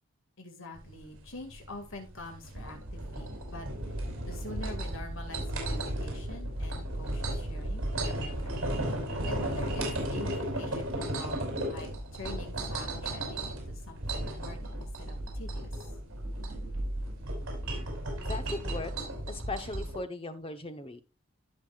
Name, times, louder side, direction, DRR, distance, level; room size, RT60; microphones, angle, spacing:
voice 1, 0.4-3.7 4.0-8.6 9.2-11.4 11.6-15.7, left 2 dB, 65° left, 4 dB, 2.1 m, -45 dB
sound 1, 0.8-20.0, right 1 dB, 60° right, 5.4 m, -35 dB
voice 2, 18.2-21.0, left 2 dB, 25° left, 8 dB, 1.0 m, -38 dB
17.0 x 5.8 x 2.4 m, 0.27 s
head